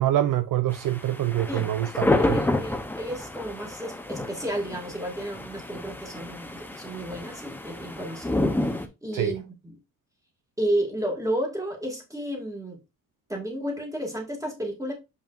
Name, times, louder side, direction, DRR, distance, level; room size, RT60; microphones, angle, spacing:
voice 1, 0.0-2.4 9.1-9.4, right 12 dB, 65° right, 0.6 m, -25 dB
sound 1, 0.7-8.9, left 1 dB, 5° left, 0.7 m, -29 dB
voice 2, 2.0-8.7 9.0-9.8 10.6-12.8 13.3-14.9, right 1 dB, 10° right, 2.1 m, -32 dB
7.0 x 5.5 x 2.5 m
wide cardioid pair, 155°, 34 cm